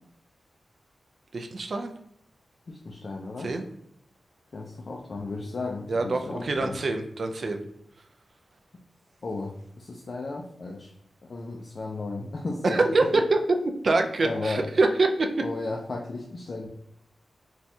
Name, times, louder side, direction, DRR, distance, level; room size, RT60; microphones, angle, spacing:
voice 1, 1.3-1.9 3.4-3.7 5.9-7.6 12.6-13.4 13.8-15.3, right 3 dB, 50° right, 5 dB, 0.3 m, -25 dB
voice 2, 2.7-3.5 4.5-6.8 9.2-10.9 11.3-13.2 14.2-14.6 15.4-16.7, left 3 dB, 50° left, 0 dB, 0.4 m, -34 dB
4.1 x 2.3 x 2.6 m, 0.74 s
wide cardioid pair, 130°, 0 cm